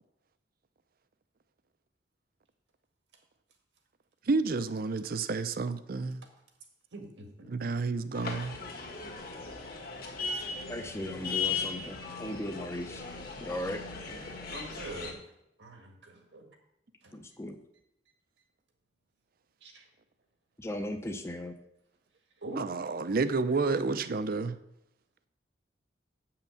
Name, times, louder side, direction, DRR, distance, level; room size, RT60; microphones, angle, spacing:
voice 1, 4.3-6.2 7.5-8.6 22.6-24.6, right 3 dB, 55° right, 12 dB, 0.5 m, -30 dB
voice 2, 6.9-7.5 7.8-7.9 14.5-15.2 15.6-16.4 17.0-17.2 19.6-19.8 22.4-22.6, right 2 dB, 85° right, 3 dB, 1.8 m, -43 dB
sound 1, 8.1-15.1, left 5 dB, 55° left, 1.7 m, -37 dB
voice 3, 10.7-13.0 13.4-13.8 17.1-17.6 20.6-21.5, left 1 dB, 15° left, 6 dB, 0.6 m, -37 dB
8.0 x 5.8 x 6.9 m, 0.82 s
head